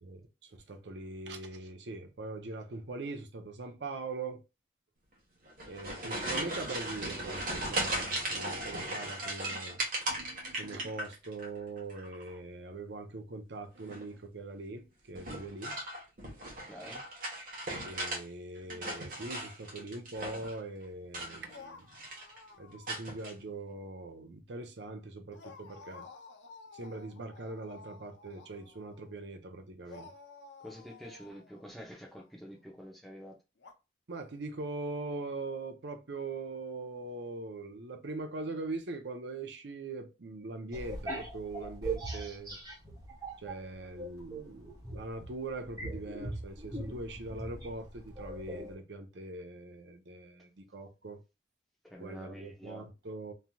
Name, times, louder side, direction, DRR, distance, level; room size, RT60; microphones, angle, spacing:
voice 1, 0.0-4.4 5.7-9.8 10.6-15.7 17.8-21.9 22.5-26.1 26.7-30.1 34.1-42.6 43.4-51.2 52.0-53.3, right 3 dB, 70° right, 0.7 m, -42 dB
sound 1, 5.5-11.5 11.8-12.4 13.8-14.2 15.2-18.2 18.6-20.6 21.0-21.7 21.9-22.4 22.9-23.3, right 1 dB, 50° right, 1.2 m, -37 dB
voice 2, 16.7-17.0 30.6-33.3 51.8-52.9, equal, ahead, 0.7 m, -47 dB
sound 2, 21.4-23.4 23.7-23.8 25.3-29.2 29.9-32.3 33.6-33.7, left 4 dB, 75° left, 0.7 m, -53 dB
sound 3, 40.7-43.6 44.0-48.7, right 2 dB, 20° right, 1.2 m, -40 dB
3.2 x 2.7 x 2.2 m
head